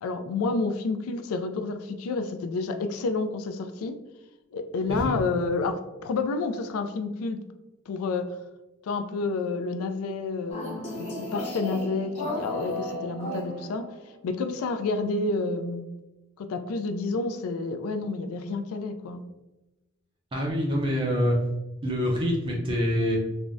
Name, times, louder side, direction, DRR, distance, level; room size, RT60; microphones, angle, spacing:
voice 1, 0.0-4.0 4.5-7.4 7.9-8.3 8.8-13.9 14.2-15.9 16.4-19.2, left 3 dB, 85° left, 8 dB, 0.3 m, -29 dB
sound 1, 10.5-14.0, left 1 dB, 30° left, 0.8 m, -34 dB
voice 2, 20.3-21.4 21.8-23.2, equal, 25° right, -3 dB, 0.5 m, -25 dB
3.4 x 2.0 x 2.5 m, 1.0 s
head